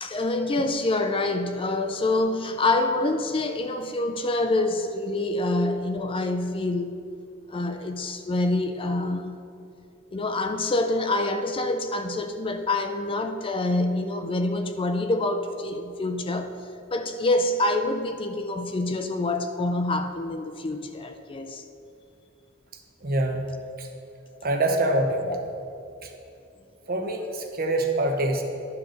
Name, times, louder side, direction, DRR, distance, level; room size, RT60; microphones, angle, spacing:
voice 1, 0.0-7.0 7.5-9.4 10.1-16.5 16.9-21.6, left 2 dB, 25° left, 7 dB, 0.4 m, -26 dB
voice 2, 23.0-23.4 23.8-23.9 24.4-25.3 26.9-28.4, right 1 dB, 45° right, 3 dB, 0.9 m, -25 dB
11.0 x 6.3 x 3.9 m, 2.6 s
head